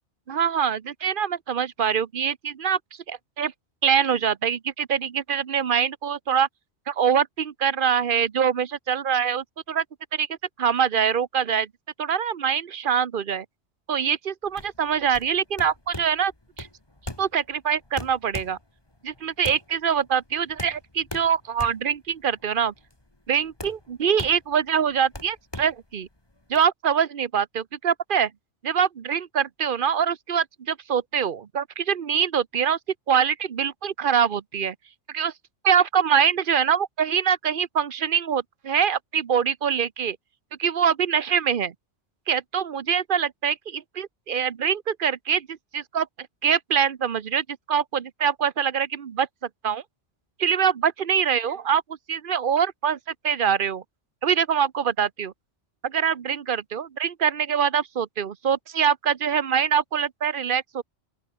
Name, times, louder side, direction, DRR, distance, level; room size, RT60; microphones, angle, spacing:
voice 1, 0.3-2.8 3.1-3.5 3.8-6.5 6.9-9.8 10.1-10.3 10.6-11.7 12.0-13.4 13.9-16.3 16.6-16.7 17.2-18.6 19.0-22.7 23.3-26.1 26.5-28.3 28.6-32.8 33.1-34.7 35.1-35.3 35.6-40.2 40.6-41.7 42.3-46.1 46.4-49.3 49.6-49.8 50.4-51.8 52.1-53.0 53.2-53.8 54.2-55.3 55.8-60.8, right 7 dB, 50° right, 0.9 m, -24 dB
sound 1, 14.5-26.6, left 1 dB, 20° left, 2.6 m, -40 dB
open air
omnidirectional pair, 1.2 m